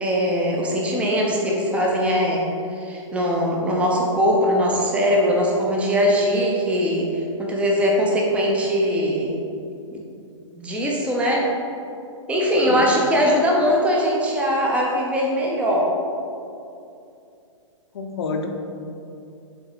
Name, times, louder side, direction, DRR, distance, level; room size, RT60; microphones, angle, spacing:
voice 1, 0.0-2.5 2.7-9.4 9.9-10.0 10.5-11.5 12.3-15.9, equal, 5° right, -2 dB, 0.7 m, -21 dB
voice 2, 17.9-18.5, left 4 dB, 55° left, 3 dB, 0.7 m, -28 dB
6.9 x 3.8 x 3.9 m, 2.6 s
figure-of-eight pair, 120°, 16 cm